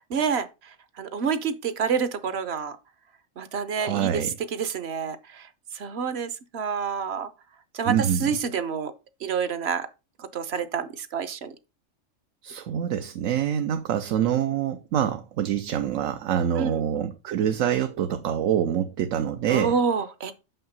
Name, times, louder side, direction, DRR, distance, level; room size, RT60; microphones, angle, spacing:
voice 1, 0.1-0.5 1.0-2.8 3.4-4.2 4.5-5.5 5.7-7.3 7.7-8.9 9.2-9.9 10.2-11.5 16.6-16.8 19.5-20.3, right 6 dB, 60° right, 1.0 m, -28 dB
voice 2, 3.8-4.4 7.9-8.3 12.4-19.8, right 9 dB, 80° right, 1.0 m, -26 dB
6.4 x 5.7 x 5.3 m
omnidirectional pair, 1.3 m